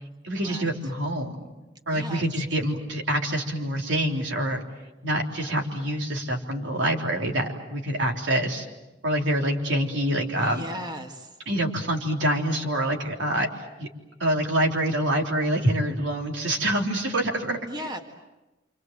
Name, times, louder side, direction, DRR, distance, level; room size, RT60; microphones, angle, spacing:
voice 1, 0.2-1.3 1.9-4.6 5.0-8.7 9.0-10.7 11.5-13.9 14.2-17.9, right 1 dB, 85° right, 1 dB, 3.8 m, -26 dB
voice 2, 1.9-2.2 10.4-11.3 17.7-18.0, equal, 25° right, 4 dB, 1.8 m, -36 dB
28.5 x 27.0 x 7.6 m, 1.1 s
head